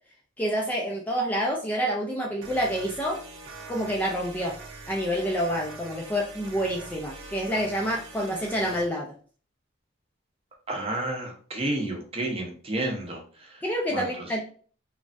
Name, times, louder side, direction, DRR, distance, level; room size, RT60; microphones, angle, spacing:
voice 1, 0.4-3.2 3.7-4.5 4.9-9.1 13.6-14.4, equal, 10° left, -2 dB, 0.4 m, -28 dB
sound 1, 2.4-8.9, right 2 dB, 65° right, 0.6 m, -43 dB
voice 2, 10.7-13.6 13.9-14.1, right 1 dB, 30° right, 1 dB, 0.7 m, -31 dB
3.1 x 2.3 x 2.5 m, 0.42 s
head